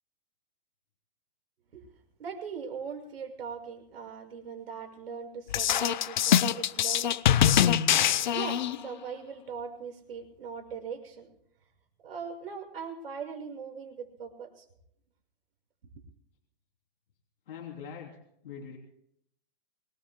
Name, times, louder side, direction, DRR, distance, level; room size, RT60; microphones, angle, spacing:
voice 1, 2.2-7.6 8.0-11.3 12.0-14.6, right 6 dB, 85° right, 3 dB, 6.4 m, -40 dB
sound 1, 5.5-8.9, left 10 dB, 50° left, 0.7 m, -24 dB
voice 2, 17.5-18.2 18.4-18.8, left 7 dB, 65° left, -1 dB, 3.2 m, -42 dB
25.5 x 21.5 x 2.2 m, 0.74 s
hypercardioid pair, 175°, 29 cm